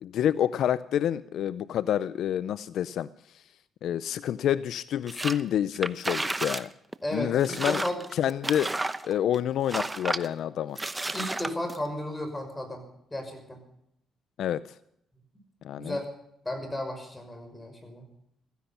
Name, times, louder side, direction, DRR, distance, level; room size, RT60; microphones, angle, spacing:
voice 1, 0.0-3.1 3.8-6.7 7.1-7.8 8.1-8.7 9.0-10.8 14.4-14.6 15.6-16.0, left 10 dB, 75° left, 16 dB, 0.5 m, -28 dB
sound 1, 5.1-5.4 5.7-6.7 6.9-7.0 7.4-9.4 9.7-10.3 10.7-11.8, right 2 dB, 15° right, 0.8 m, -32 dB
voice 2, 7.0-8.0 11.1-12.8 13.1-13.6 15.8-16.1 16.4-18.1, left 1 dB, 15° left, 5 dB, 5.8 m, -34 dB
15.5 x 15.5 x 5.8 m, 0.73 s
cardioid pair, 90°, 0 cm